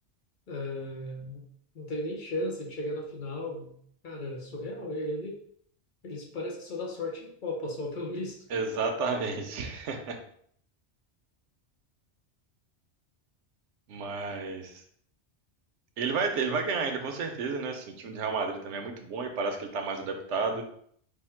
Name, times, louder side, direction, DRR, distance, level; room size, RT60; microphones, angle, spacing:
voice 1, 0.5-1.4 1.7-3.7 4.0-5.4 6.0-8.4, left 1 dB, 55° left, 1 dB, 0.7 m, -35 dB
voice 2, 8.5-10.2 13.9-14.8 16.0-20.6, right 4 dB, 85° right, 5 dB, 1.0 m, -31 dB
3.5 x 2.1 x 4.3 m, 0.63 s
omnidirectional pair, 1.2 m